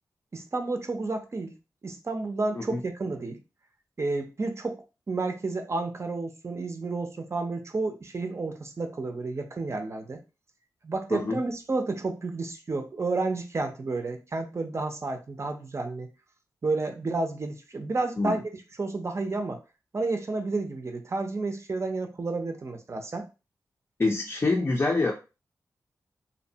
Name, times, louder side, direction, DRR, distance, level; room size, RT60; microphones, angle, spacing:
voice 1, 0.3-1.6 1.8-3.4 4.0-10.2 10.8-16.1 16.6-18.5 18.8-19.6 19.9-23.2, right 3 dB, 40° right, 5 dB, 0.5 m, -31 dB
voice 2, 11.1-11.4 18.2-18.4 24.0-25.1, left 3 dB, 35° left, 0 dB, 0.5 m, -26 dB
2.7 x 2.1 x 2.7 m, 0.30 s
cardioid pair, 65°, 7 cm